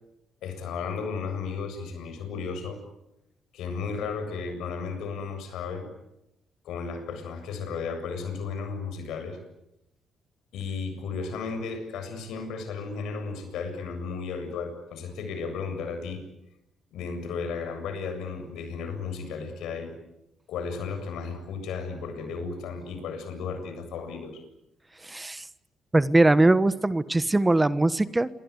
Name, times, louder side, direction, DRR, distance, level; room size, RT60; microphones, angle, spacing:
voice 1, 0.4-2.8 3.5-5.9 6.6-9.4 10.5-16.2 16.9-19.9 20.5-24.4, left 5 dB, 85° left, 8 dB, 7.6 m, -34 dB
voice 2, 25.0-25.4 25.9-28.3, right 2 dB, 15° right, 13 dB, 1.3 m, -21 dB
28.5 x 24.0 x 8.3 m, 0.87 s
cardioid pair, 90°, 0 cm